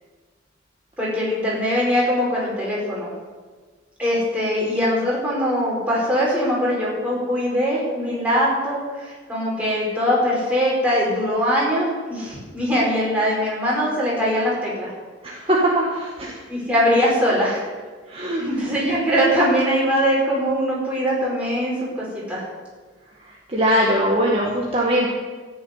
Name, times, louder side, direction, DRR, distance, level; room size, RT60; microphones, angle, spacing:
voice 1, 1.0-3.1 4.0-14.9 16.5-17.6 18.4-22.4, equal, 5° right, -6 dB, 4.9 m, -22 dB
voice 2, 15.2-16.4 18.1-18.4 23.2-25.1, equal, 30° right, -4 dB, 1.8 m, -21 dB
14.0 x 7.2 x 9.4 m, 1.4 s
head